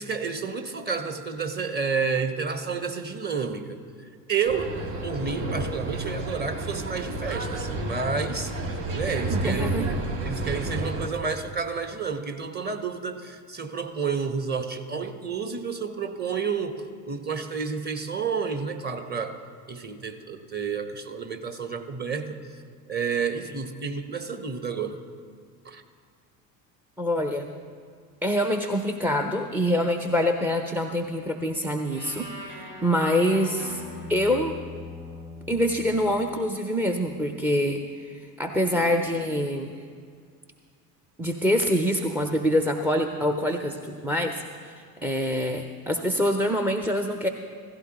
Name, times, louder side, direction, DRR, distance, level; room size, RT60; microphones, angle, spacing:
voice 1, 0.0-3.8 4.3-4.7 5.0-8.5 8.9-19.4 19.7-22.4 22.9-25.0 25.6-25.8, right 5 dB, 20° right, 7 dB, 1.1 m, -30 dB
sound 1, 4.5-11.1, right 2 dB, 65° right, 1.6 m, -31 dB
voice 2, 9.3-9.9 27.0-27.5 28.2-33.8 34.1-34.5 35.5-39.8 41.2-47.3, equal, 5° right, 5 dB, 0.5 m, -25 dB
sound 2, 31.9-37.1 38.6-39.3, left 2 dB, 85° right, 3.5 m, -42 dB
16.0 x 15.0 x 3.0 m, 2.1 s
figure-of-eight pair, 70°, 50 cm